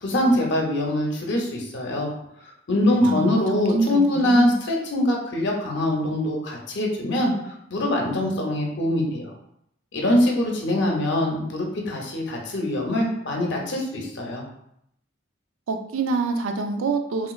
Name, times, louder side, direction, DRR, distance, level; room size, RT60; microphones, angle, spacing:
voice 1, 0.0-2.1 2.7-7.3 7.7-9.3 9.9-14.4, left 1 dB, 60° left, 0 dB, 0.7 m, -23 dB
voice 2, 3.0-4.6 15.7-17.3, right 3 dB, 75° right, 6 dB, 0.4 m, -26 dB
3.1 x 3.0 x 2.3 m, 0.75 s
head